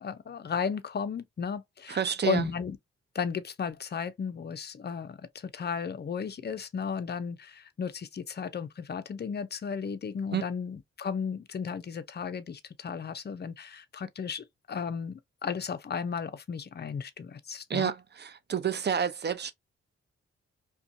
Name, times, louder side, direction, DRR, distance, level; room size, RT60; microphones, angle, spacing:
voice 1, 0.0-2.8 3.1-17.9, left 6 dB, 35° left, 0.5 m, -34 dB
voice 2, 1.9-2.5 10.3-10.4 17.7-19.5, right 8 dB, 35° right, 0.5 m, -29 dB
2.5 x 2.2 x 2.5 m
supercardioid pair, 50°, 29 cm